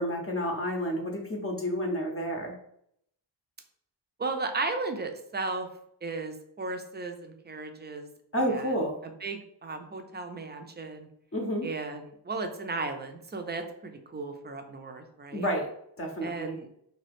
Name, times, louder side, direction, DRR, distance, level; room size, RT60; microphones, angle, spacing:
voice 1, 0.0-2.5 8.3-9.0 11.3-11.7 15.3-15.7 16.0-16.6, equal, 30° left, 1 dB, 0.7 m, -30 dB
voice 2, 4.2-5.7 6.0-8.1 8.4-8.7 9.0-11.1 11.6-15.5 16.2-16.7, right 3 dB, 25° right, 5 dB, 0.5 m, -35 dB
2.7 x 2.3 x 3.4 m, 0.71 s
cardioid pair, 60°, 45 cm